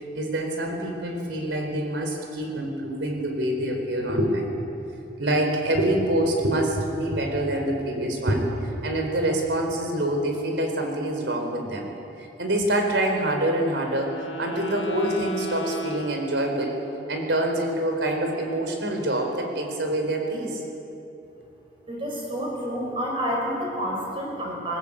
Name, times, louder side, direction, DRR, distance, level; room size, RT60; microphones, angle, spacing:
voice 1, 0.1-4.8 5.2-11.9 12.2-16.8 17.1-20.6, right 1 dB, 75° right, 3 dB, 4.3 m, -26 dB
Wind instrument woodwind instrument, 13.4-17.0, equal, 75° left, 1.9 m, -36 dB
voice 2, 21.9-24.8, equal, 30° right, -2 dB, 6.0 m, -29 dB
21.0 x 19.0 x 8.8 m, 2.8 s
head